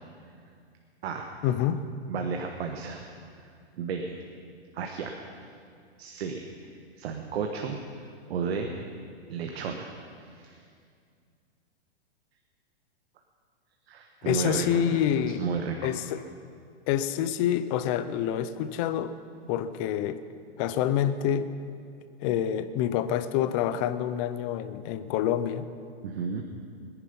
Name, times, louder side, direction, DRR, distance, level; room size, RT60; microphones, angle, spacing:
voice 1, 1.4-1.8 14.2-15.4 15.8-16.2 16.9-19.1 19.5-20.2 20.6-21.5 22.2-25.6, left 10 dB, 30° left, 12 dB, 0.6 m, -27 dB
voice 2, 2.1-3.0 3.8-4.2 4.7-5.4 6.0-7.8 8.3-8.7 9.3-9.9 10.2-10.6 13.9-15.9 26.0-26.4, right 5 dB, 70° right, 3 dB, 1.4 m, -33 dB
21.0 x 10.5 x 5.5 m, 2.3 s
hypercardioid pair, 145°, 32 cm